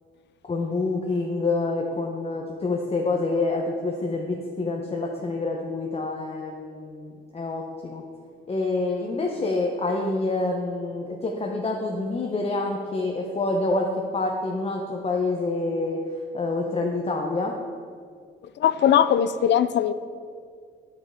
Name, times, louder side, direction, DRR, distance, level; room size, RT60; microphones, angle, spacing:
voice 1, 0.4-8.0 8.5-13.9 14.1-16.0 16.3-17.5, left 3 dB, 30° left, 1 dB, 0.9 m, -27 dB
voice 2, 18.6-19.9, left 9 dB, 65° left, 14 dB, 0.5 m, -20 dB
9.2 x 8.4 x 3.7 m, 2.2 s
cardioid pair, 90°, 20 cm